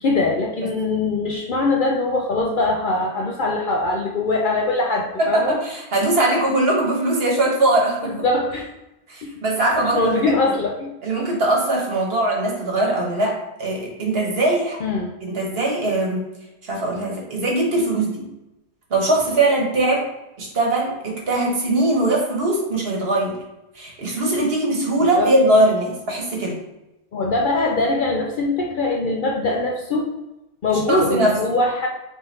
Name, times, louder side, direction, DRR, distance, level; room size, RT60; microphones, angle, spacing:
voice 1, 0.0-5.6 8.0-8.7 9.2-9.3 9.8-10.9 14.8-15.1 25.0-25.3 27.1-30.1 30.6-31.9, left 2 dB, 60° left, 0 dB, 0.5 m, -22 dB
voice 2, 5.3-8.1 9.1-10.1 10.5-10.6 11.0-14.8 15.2-16.2 16.7-18.2 18.9-20.0 20.4-23.3 23.8-26.5 30.7-31.3, right 1 dB, 50° right, -2 dB, 1.3 m, -21 dB
3.5 x 3.4 x 4.0 m, 0.95 s
omnidirectional pair, 1.3 m